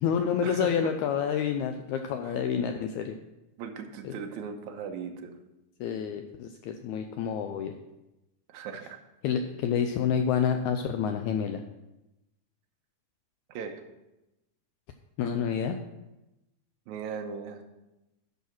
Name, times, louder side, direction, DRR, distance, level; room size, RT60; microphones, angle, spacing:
voice 1, 0.0-3.2 4.0-4.2 5.8-7.7 9.2-11.6 15.2-15.8, left 7 dB, 85° left, 6 dB, 1.7 m, -28 dB
voice 2, 3.6-5.3 8.5-9.0 13.5-13.8 16.9-17.6, right 6 dB, 70° right, 4 dB, 2.1 m, -38 dB
11.5 x 5.5 x 5.9 m, 0.96 s
omnidirectional pair, 3.9 m